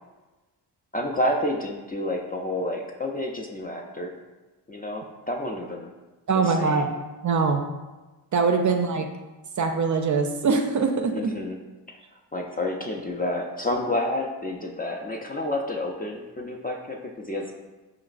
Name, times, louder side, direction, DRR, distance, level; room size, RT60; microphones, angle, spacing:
voice 1, 0.9-4.1 4.7-5.9 6.4-6.9 11.1-11.6 11.9-12.0 12.3-17.5, left 1 dB, 20° left, 1 dB, 0.4 m, -29 dB
voice 2, 6.3-6.9 7.2-7.6 8.3-9.1 9.6-11.3, right 4 dB, 40° right, 5 dB, 0.4 m, -23 dB
5.0 x 3.0 x 2.4 m, 1.2 s
cardioid pair, 65°, 47 cm